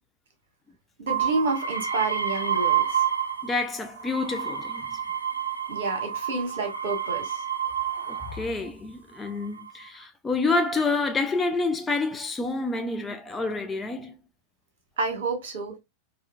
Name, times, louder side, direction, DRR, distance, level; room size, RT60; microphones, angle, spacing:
voice 1, 1.0-3.1 5.7-7.4 15.0-15.8, right 3 dB, 60° right, 1.5 m, -29 dB
sound 1, 1.1-3.6 4.0-8.5 9.3-9.8, right 8 dB, 80° right, 0.6 m, -29 dB
voice 2, 3.4-5.0 8.1-14.1, left 3 dB, 15° left, 0.5 m, -28 dB
4.3 x 2.4 x 2.4 m
figure-of-eight pair, 90°, 0 cm